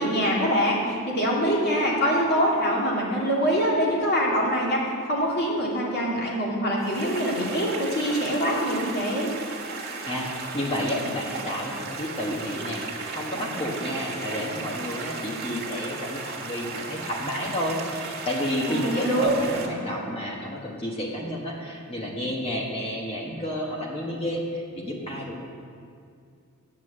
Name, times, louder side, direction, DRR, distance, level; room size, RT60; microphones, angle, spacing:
voice 1, 0.0-4.8 5.1-9.3 18.7-19.3, equal, 50° left, -3 dB, 2.4 m, -24 dB
sound 1, 6.8-19.7, right 4 dB, 45° right, 1.7 m, -35 dB
voice 2, 10.1-25.4, left 1 dB, 25° left, -2 dB, 1.4 m, -31 dB
9.1 x 8.4 x 7.7 m, 2.3 s
head